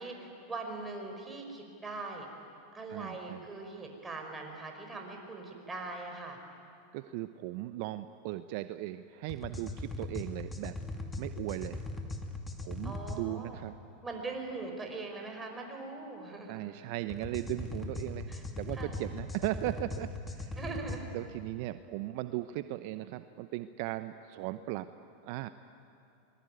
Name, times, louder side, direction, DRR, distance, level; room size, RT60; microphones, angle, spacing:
voice 1, 0.0-2.3 2.7-6.4 12.8-13.6 14.0-16.7 18.3-18.4 18.7-19.0 20.6-21.1, right 3 dB, 15° right, 2 dB, 5.6 m, -41 dB
voice 2, 2.9-3.4 6.9-10.7 11.2-11.8 12.6-13.8 16.5-20.6 21.1-24.9 25.2-25.5, right 16 dB, 60° right, 12 dB, 0.7 m, -37 dB
sound 1, 9.3-13.2 17.1-21.0, left 2 dB, 15° left, 2.5 m, -39 dB
24.0 x 21.0 x 9.5 m, 2.6 s
hypercardioid pair, 100°, 0 cm